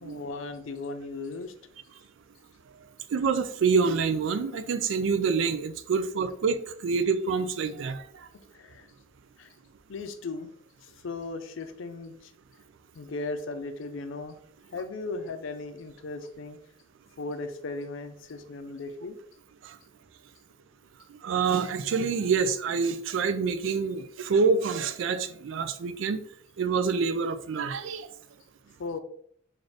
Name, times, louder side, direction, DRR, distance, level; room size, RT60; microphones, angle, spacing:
voice 1, 0.0-1.5 8.5-8.9 9.4-9.5 9.9-10.5 10.8-12.3 12.9-14.4 14.7-16.6 17.2-19.2 28.8-29.0, left 3 dB, 75° left, 9 dB, 0.4 m, -37 dB
voice 2, 3.1-6.6 6.8-8.0 21.2-26.2 26.6-28.1, right 5 dB, 70° right, 11 dB, 0.4 m, -26 dB
3.3 x 2.5 x 3.9 m, 0.63 s
head